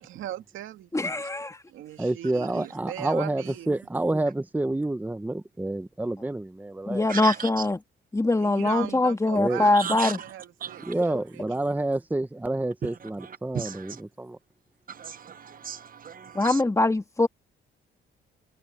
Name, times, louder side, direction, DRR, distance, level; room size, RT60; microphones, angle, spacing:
voice 1, 0.0-0.9 1.7-3.7 8.4-11.4, right 13 dB, 85° right, 2.4 m, -39 dB
voice 2, 0.9-1.6 6.9-7.8 8.1-10.2 16.3-17.3, left 2 dB, 15° left, 2.6 m, -23 dB
voice 3, 2.0-7.1 9.3-9.6 10.8-14.4, right 2 dB, 10° right, 0.9 m, -28 dB
voice 4, 7.1-7.5 9.7-10.2 10.6-10.9 12.8-12.9 13.2-14.0 14.9-16.6, right 7 dB, 45° right, 1.2 m, -35 dB
cardioid pair, 90°, 20 cm